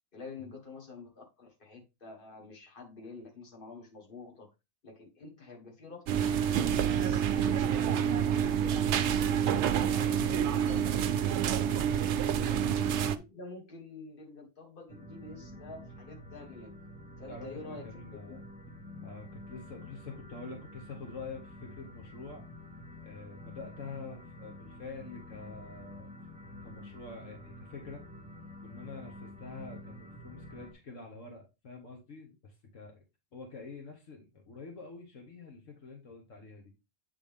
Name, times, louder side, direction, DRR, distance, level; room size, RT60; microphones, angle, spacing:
voice 1, 0.1-4.5 4.8-8.9 9.2-11.0 12.2-12.6 12.9-16.7 17.2-18.4, left 3 dB, 40° left, 1 dB, 1.7 m, -48 dB
sound 1, 6.1-13.2, right 9 dB, 65° right, 0.8 m, -28 dB
voice 2, 10.1-11.2 11.6-11.9 12.2-12.6 17.3-18.4 19.0-22.4 23.0-26.1 26.6-28.0 28.6-33.0 33.3-36.7, left 4 dB, 65° left, 2 dB, 1.5 m, -46 dB
sound 2, 14.9-30.7, left 1 dB, 5° right, 0.8 m, -48 dB
8.1 x 3.7 x 3.5 m, 0.26 s
omnidirectional pair, 1.4 m